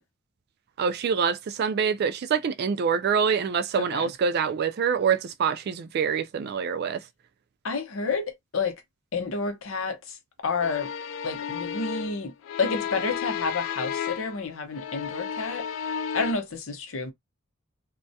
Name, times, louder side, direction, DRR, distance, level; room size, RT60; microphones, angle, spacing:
voice 1, 0.8-7.0, right 6 dB, 50° right, 0.3 m, -25 dB
voice 2, 3.8-4.1 7.6-8.7 9.1-10.0 10.4-10.9 11.2-12.3 12.6-15.6 16.1-17.1, left 4 dB, 85° left, 0.7 m, -29 dB
sound 1, 10.6-14.4 14.7-16.3, left 8 dB, 70° left, 0.3 m, -33 dB
2.2 x 2.1 x 2.7 m
head